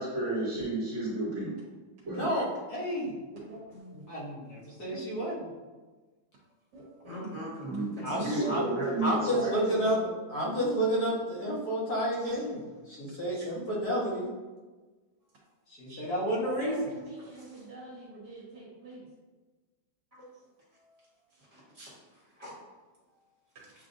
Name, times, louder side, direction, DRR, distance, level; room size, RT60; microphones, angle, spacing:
voice 1, 0.0-1.5 2.0-2.3 7.6-10.1, right 2 dB, 45° right, -7 dB, 1.7 m, -32 dB
voice 2, 2.1-3.2 4.1-5.5 8.0-8.7 9.0-10.0 10.3-14.3 15.7-16.8, equal, 60° left, -6 dB, 1.6 m, -30 dB
voice 3, 7.0-8.5 13.4-13.5 15.9-16.0 17.3-17.6 20.1-20.2 21.5-22.5, equal, 20° right, -8 dB, 1.4 m, -42 dB
voice 4, 16.4-19.1, right 2 dB, 65° right, -4 dB, 1.7 m, -44 dB
7.4 x 2.5 x 2.6 m, 1.3 s
omnidirectional pair, 2.0 m